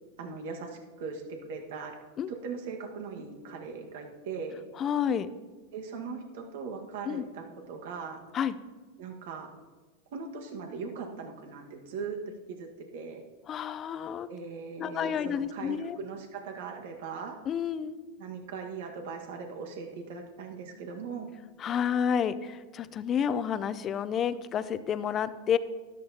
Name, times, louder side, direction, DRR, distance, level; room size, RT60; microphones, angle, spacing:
voice 1, 0.2-1.9 2.3-4.6 5.7-8.2 9.0-9.5 10.1-12.2 12.5-13.2 14.3-17.4 18.2-21.3, right 5 dB, 70° right, 2 dB, 1.6 m, -39 dB
voice 2, 4.8-5.3 7.1-7.3 8.3-8.5 13.5-14.3 14.8-16.0 17.5-18.0 21.6-25.6, left 8 dB, 35° left, 15 dB, 0.5 m, -30 dB
13.0 x 11.5 x 2.9 m, 1.3 s
hypercardioid pair, 110°, 0 cm